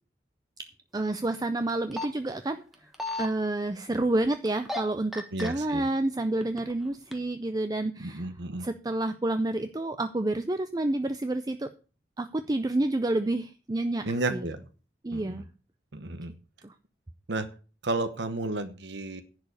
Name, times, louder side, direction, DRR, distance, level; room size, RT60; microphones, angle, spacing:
voice 1, 0.6-2.6 3.2-8.3 8.6-11.7 12.2-14.4 15.0-15.5 16.6-16.7, right 2 dB, 20° right, 10 dB, 0.5 m, -29 dB
sound 1, 1.7-2.1 2.7-3.3 4.5-4.8 5.1-5.5 6.2-6.7 7.1-7.2, left 1 dB, ahead, 1.3 m, -32 dB
voice 2, 5.3-5.8 8.0-8.6 14.1-14.6 15.1-15.4 15.9-16.3 17.3-17.5 17.8-19.2, right 2 dB, 80° right, 9 dB, 1.1 m, -32 dB
10.5 x 4.8 x 8.2 m, 0.36 s
head